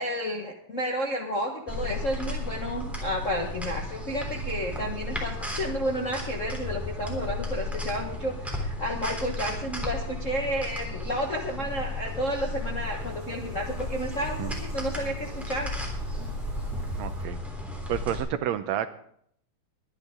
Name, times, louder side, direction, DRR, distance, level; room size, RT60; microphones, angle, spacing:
voice 1, 0.0-15.7, equal, 50° left, 0 dB, 0.9 m, -31 dB
sound 1, 1.7-18.2, left 1 dB, ahead, 3.0 m, -34 dB
sound 2, 11.7-17.3, left 1 dB, 40° right, 6.2 m, -44 dB
voice 2, 17.0-17.4 17.9-18.9, right 11 dB, 75° right, 11 dB, 1.8 m, -30 dB
23.0 x 10.5 x 3.7 m, 0.67 s
omnidirectional pair, 3.5 m